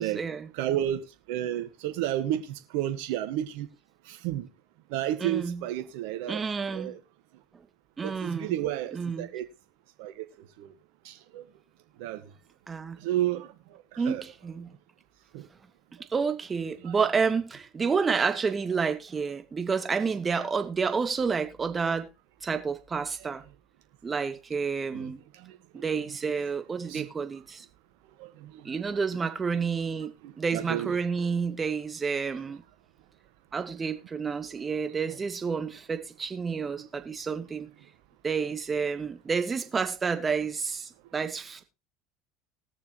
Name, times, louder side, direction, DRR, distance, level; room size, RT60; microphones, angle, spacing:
voice 1, 0.0-0.5 5.2-5.6 6.3-6.9 8.0-8.6 8.9-9.3 12.7-13.0 14.0-14.7 16.1-22.1 22.4-23.4 24.0-25.2 25.7-27.7 28.6-32.6 33.5-37.7 38.2-41.6, right 5 dB, 25° right, 2.1 m, -30 dB
voice 2, 0.5-3.7 4.1-4.5 4.9-6.4 6.7-7.0 8.0-9.4 10.0-10.2 10.6-10.7 11.0-11.4 12.0-12.2 13.0-14.2 15.3-15.5 16.8-16.9 23.2-23.3 24.9-25.6 26.9-27.1 28.2-28.7 30.2-30.9 36.8-36.9, right 12 dB, 70° right, 1.5 m, -32 dB
20.0 x 6.8 x 3.1 m
hypercardioid pair, 80°, 0 cm